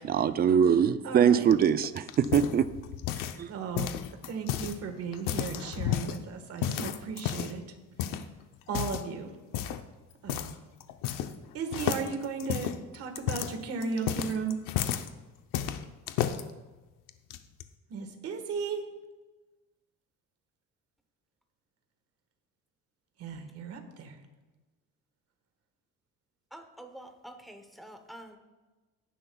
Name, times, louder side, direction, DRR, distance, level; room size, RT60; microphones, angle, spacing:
voice 1, 0.0-2.7 3.4-3.5, right 8 dB, 30° right, 0.4 m, -23 dB
voice 2, 1.0-1.5 3.5-3.9 4.3-7.6 8.7-9.3 10.2-10.5 11.5-14.5 17.9-18.8 23.2-24.2, right 5 dB, 50° right, 1.5 m, -35 dB
sound 1, 1.5-3.4 3.7-4.7 5.1-6.2 6.6-7.6 8.0-8.2 8.7-9.1 9.5-9.8 10.3-10.5 10.8-11.4 11.7-15.1 15.5-16.4 17.1-17.6, left 10 dB, 85° left, 0.8 m, -32 dB
voice 3, 26.5-28.4, right 1 dB, ahead, 0.8 m, -47 dB
17.5 x 10.5 x 2.3 m
cardioid pair, 175°, 32 cm